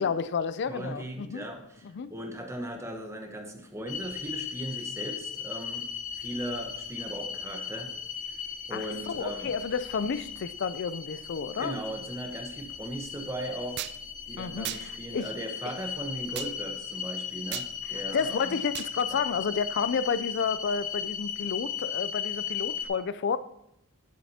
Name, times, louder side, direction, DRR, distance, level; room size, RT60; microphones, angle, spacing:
voice 1, 0.0-1.4 1.9-2.1 8.7-11.7 14.4-15.3 15.6-15.7 18.1-23.4, left 6 dB, 50° left, 0.4 m, -31 dB
voice 2, 0.7-5.9 6.1-7.9 8.7-9.5 11.6-13.8 14.3-18.5 19.1-19.2, right 1 dB, 15° right, 1.1 m, -38 dB
sound 1, 3.9-22.8, left 8 dB, 35° left, 0.8 m, -37 dB
sound 2, 13.8-14.0 14.6-14.8 16.3-16.5 17.5-17.7 18.7-18.9, right 13 dB, 50° right, 0.3 m, -35 dB
14.0 x 7.5 x 2.8 m
head